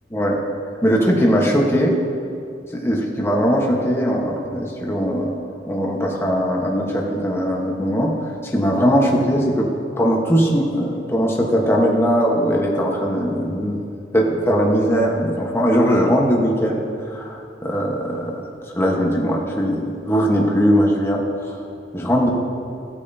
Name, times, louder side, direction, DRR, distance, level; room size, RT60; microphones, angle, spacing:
voice 1, 0.8-2.0 2.7-5.3 5.6-8.1 8.4-9.7 10.0-13.8 14.1-18.4 18.7-21.5 21.9-22.3, equal, 15° left, -2 dB, 1.2 m, -20 dB
16.5 x 8.7 x 2.7 m, 2.5 s
head